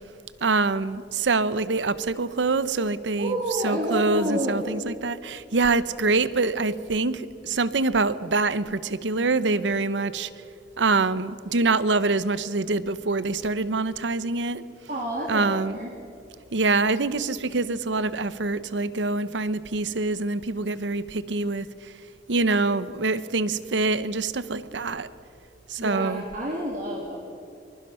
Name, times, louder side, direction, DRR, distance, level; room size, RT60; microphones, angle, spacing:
voice 1, 0.4-3.4 3.6-10.3 10.8-14.6 15.3-15.8 16.5-21.9 22.3-25.1 25.7-26.2, right 3 dB, 75° right, 15 dB, 0.8 m, -25 dB
voice 2, 3.2-4.7 14.9-15.9 25.8-27.2, equal, 50° right, -3 dB, 2.9 m, -29 dB
23.5 x 21.5 x 5.7 m, 2.6 s
head